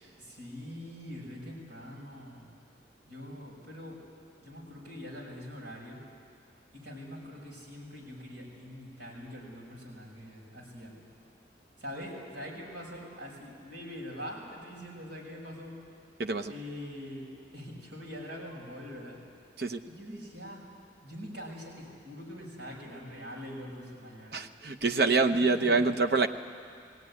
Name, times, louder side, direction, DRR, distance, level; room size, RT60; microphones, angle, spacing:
voice 1, 0.2-2.5 3.1-4.0 4.4-6.0 6.7-11.0 11.8-15.8 16.5-19.2 19.9-20.7 21.0-24.4 25.2-25.8, equal, 75° right, -3 dB, 5.8 m, -43 dB
voice 2, 16.2-16.5 19.6-19.8 24.3-26.3, right 3 dB, 60° right, 6 dB, 0.8 m, -26 dB
18.5 x 17.5 x 9.7 m, 2.2 s
head